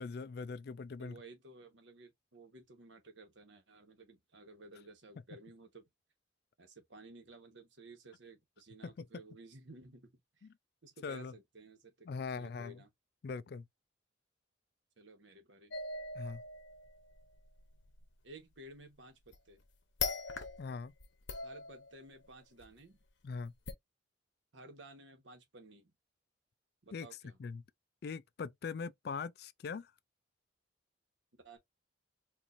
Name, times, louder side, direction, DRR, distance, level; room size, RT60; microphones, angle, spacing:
voice 1, 0.0-1.2 8.8-9.1 11.0-11.3 12.1-12.8 13.2-13.7 16.2-16.4 20.6-20.9 23.2-23.5 26.9-27.1 27.4-27.6 28.0-29.9, left 5 dB, 55° left, 0.3 m, -41 dB
voice 2, 1.0-5.9 6.6-10.5 10.8-12.9 15.0-15.8 18.2-19.6 21.4-23.0 24.5-25.9 26.8-27.4 31.4-31.6, right 2 dB, 80° right, 1.3 m, -55 dB
sound 1, 15.7-18.0 19.3-19.6 20.0-20.7 21.0-22.2 22.6-22.7 23.7-23.8, left 4 dB, 75° left, 0.9 m, -41 dB
4.5 x 2.6 x 2.5 m
head